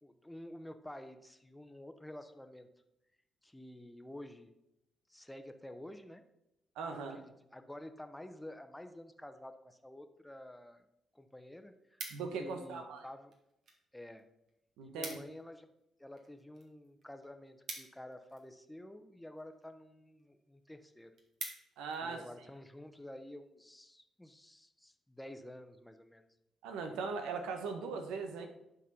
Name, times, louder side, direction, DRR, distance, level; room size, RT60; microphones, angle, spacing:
voice 1, 0.0-2.7 3.4-4.5 5.1-6.2 6.9-10.8 11.1-13.3 13.9-14.2 14.8-15.7 16.0-21.1 22.0-26.2, left 1 dB, 10° left, 8 dB, 1.0 m, -50 dB
voice 2, 6.8-7.2 12.1-13.0 14.8-15.2 21.8-22.2 26.6-28.5, right 4 dB, 85° right, 5 dB, 1.1 m, -39 dB
sound 1, 11.4-12.6 13.3-13.8 14.1-14.2 14.5-14.6 14.8-15.4 15.8-18.6 19.4-19.7 20.2-20.3 20.6-20.7 21.0-22.0 22.5-22.7, right 3 dB, 65° right, 1.9 m, -47 dB
10.5 x 4.1 x 5.5 m, 0.86 s
supercardioid pair, 55°, 0 cm